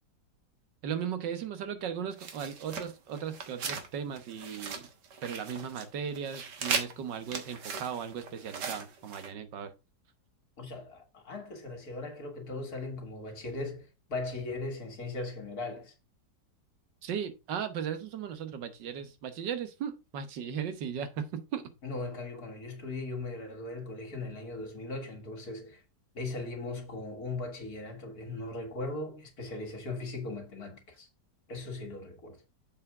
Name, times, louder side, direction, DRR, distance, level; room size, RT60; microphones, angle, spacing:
voice 1, 0.8-4.9 5.2-9.7 17.0-21.7, right 8 dB, 90° right, 1.7 m, -37 dB
sound 1, 2.2-3.9 4.1-5.9 6.1-9.3, right 5 dB, 70° right, 1.9 m, -38 dB
voice 2, 10.6-15.9 21.8-25.8 26.1-31.1 31.5-32.4, left 2 dB, 60° left, 2.4 m, -38 dB
7.3 x 4.7 x 4.9 m
omnidirectional pair, 1.9 m